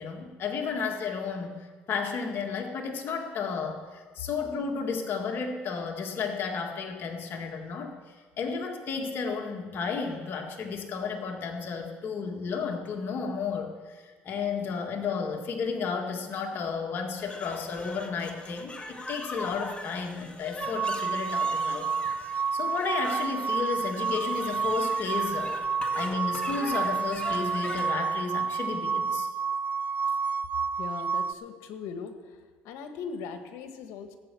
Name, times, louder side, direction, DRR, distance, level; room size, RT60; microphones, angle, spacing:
voice 1, 0.0-21.9 22.3-25.5 25.9-29.3, left 5 dB, 50° left, 2 dB, 1.9 m, -33 dB
sound 1, 17.2-27.9, left 2 dB, 20° left, 1.7 m, -41 dB
sound 2, 20.6-31.3, right 5 dB, 35° right, 0.6 m, -29 dB
voice 2, 30.8-32.4 32.6-34.2, left 5 dB, 80° left, 7 dB, 1.4 m, -39 dB
16.5 x 8.2 x 6.9 m, 1.5 s
cardioid pair, 95°, 5 cm